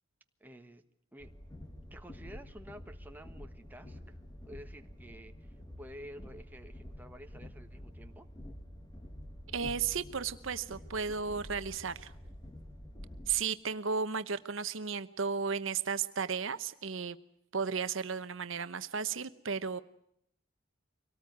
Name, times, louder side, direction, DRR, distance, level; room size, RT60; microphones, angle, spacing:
voice 1, 0.4-0.8 1.1-1.3 1.9-4.2 4.5-8.3, equal, 10° right, 5 dB, 1.3 m, -51 dB
Train, 1.2-13.4, left 1 dB, 20° left, 1.9 m, -48 dB
voice 2, 9.5-12.1 13.3-17.2 17.5-19.8, right 6 dB, 70° right, 12 dB, 1.0 m, -34 dB
24.5 x 18.5 x 9.4 m, 0.73 s
head